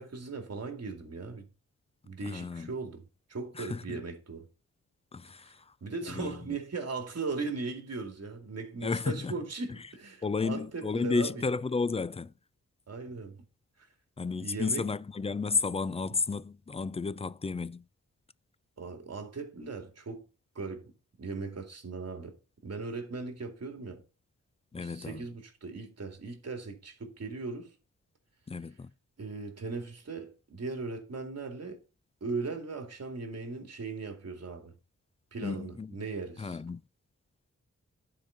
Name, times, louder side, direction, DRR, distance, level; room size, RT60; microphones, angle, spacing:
voice 1, 0.0-1.5 2.0-3.0 3.3-4.4 5.4-5.5 5.8-11.4 12.9-13.4 13.8-13.9 14.4-14.9 18.8-20.2 20.5-20.9 21.2-22.3 22.6-24.0 24.8-27.7 29.2-31.8 32.2-34.7 35.3-36.6, right 4 dB, 55° right, 2.3 m, -38 dB
voice 2, 2.2-2.7 3.5-4.0 5.1-5.7 6.1-6.4 8.8-9.4 10.2-12.3 14.2-17.8 24.7-25.3 28.5-28.9 35.4-36.1 36.4-36.8, left 4 dB, 20° left, 0.4 m, -32 dB
11.0 x 4.8 x 5.5 m
wide cardioid pair, 95°, 30 cm